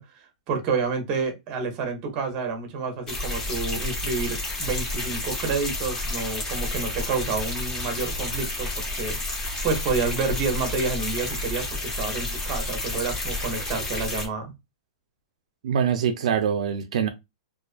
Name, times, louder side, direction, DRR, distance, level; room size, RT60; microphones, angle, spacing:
voice 1, 0.0-9.2 9.6-14.5, right 4 dB, 30° right, 0.7 m, -29 dB
sound 1, 3.1-14.3, left 2 dB, 15° left, 0.7 m, -30 dB
voice 2, 15.6-17.1, right 8 dB, 75° right, 0.3 m, -24 dB
2.4 x 2.3 x 2.4 m
supercardioid pair, 160°, 4 cm